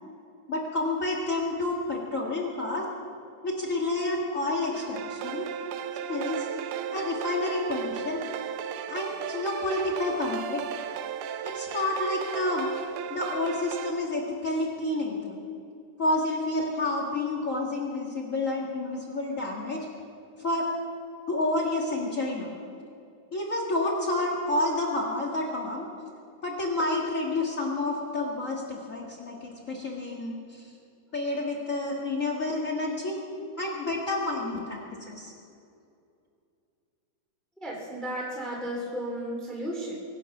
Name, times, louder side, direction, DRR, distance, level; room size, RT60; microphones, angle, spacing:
voice 1, 0.5-2.8 3.4-5.5 6.1-6.5 6.9-8.2 8.9-10.6 11.4-12.7 13.1-15.4 16.0-19.8 20.4-20.6 21.3-22.5 23.3-25.9 26.4-30.6 31.1-33.2 33.6-35.3, left 2 dB, 65° left, 0 dB, 0.7 m, -29 dB
sound 1, 4.7-13.9, right 9 dB, 85° right, 2.7 m, -35 dB
voice 2, 37.6-40.0, right 1 dB, ahead, -3 dB, 2.4 m, -34 dB
24.0 x 9.8 x 6.0 m, 2.5 s
omnidirectional pair, 4.5 m